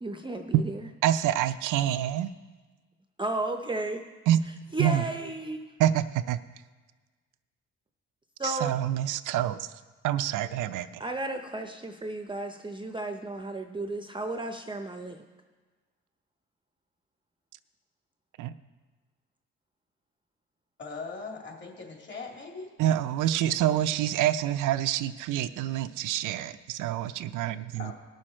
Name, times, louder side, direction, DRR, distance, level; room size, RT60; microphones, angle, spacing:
voice 1, 0.0-0.9 3.2-4.0 4.7-5.6 8.4-8.8 11.0-15.2, right 2 dB, 15° right, 5 dB, 0.7 m, -33 dB
voice 2, 1.0-2.3 4.3-4.4 4.8-5.1 5.8-6.4 8.4-9.7 10.0-11.0 18.4-18.5 22.8-27.9, right 12 dB, 85° right, 12 dB, 0.6 m, -27 dB
voice 3, 20.8-22.7 27.8-27.9, left 4 dB, 40° left, -1 dB, 3.1 m, -40 dB
19.0 x 6.4 x 4.3 m, 1.3 s
cardioid pair, 90°, 30 cm